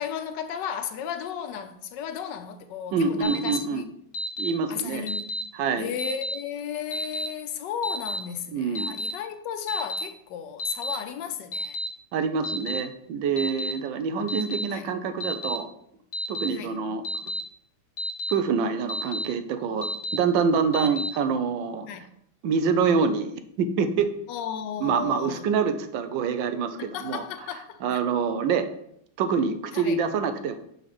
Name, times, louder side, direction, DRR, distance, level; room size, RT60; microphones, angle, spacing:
voice 1, 0.0-3.8 4.7-5.4 5.8-11.8 14.4-14.9 16.5-16.8 20.8-21.0 21.8-22.1 24.3-25.4 26.8-28.0 29.7-30.0, left 8 dB, 75° left, 1.2 m, -34 dB
voice 2, 2.9-3.8 4.4-5.1 5.5-5.9 8.5-9.0 12.1-15.7 16.3-17.0 18.3-21.9 22.4-24.1 24.8-27.2 27.8-28.7 29.2-30.6, right 5 dB, 85° right, 1.4 m, -26 dB
Alarm, 3.2-3.6 4.1-4.5 5.1-5.4 6.0-6.3 6.9-7.3 7.8-8.2 8.8-9.1 9.7-10.0 10.6-11.0 11.5-11.9 12.4-12.8 13.4-13.7 14.3-14.6 15.2-15.6 16.1-16.5 17.0-17.4 18.0-18.3 18.9-19.3 19.8-20.2 20.7-21.1, equal, 50° left, 1.3 m, -31 dB
5.8 x 4.0 x 5.9 m
omnidirectional pair, 2.0 m